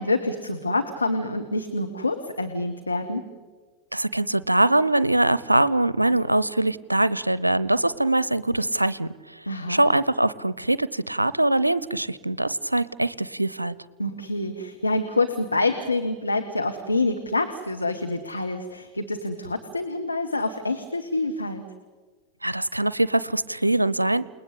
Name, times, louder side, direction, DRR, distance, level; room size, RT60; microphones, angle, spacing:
voice 1, 0.0-3.3 9.5-9.8 14.0-21.6, left 2 dB, 80° left, 4 dB, 1.5 m, -27 dB
voice 2, 3.9-9.1 9.7-13.7 22.4-24.3, right 1 dB, 85° right, 18 dB, 0.7 m, -22 dB
29.0 x 20.0 x 8.3 m, 1.4 s
figure-of-eight pair, 90°, 0 cm